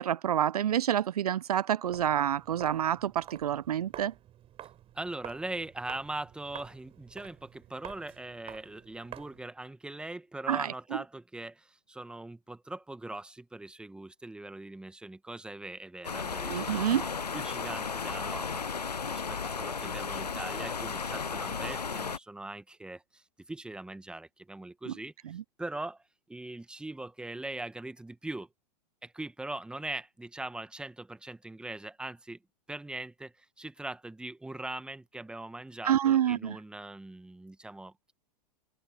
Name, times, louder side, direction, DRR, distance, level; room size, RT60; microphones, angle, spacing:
voice 1, 0.0-4.1 10.5-10.7 16.5-17.1 24.9-25.0 25.3-25.4 35.8-36.6, right 10 dB, 70° right, 0.7 m, -28 dB
Walk footsteps, 1.9-9.5, right 12 dB, 30° right, 4.0 m, -49 dB
voice 2, 4.9-18.6 19.1-26.0 26.3-28.5 29.0-32.4 32.7-38.1, right 2 dB, 5° right, 1.5 m, -41 dB
sound 1, 16.0-22.2, left 5 dB, 90° left, 0.6 m, -34 dB
open air
figure-of-eight pair, 100°, 20 cm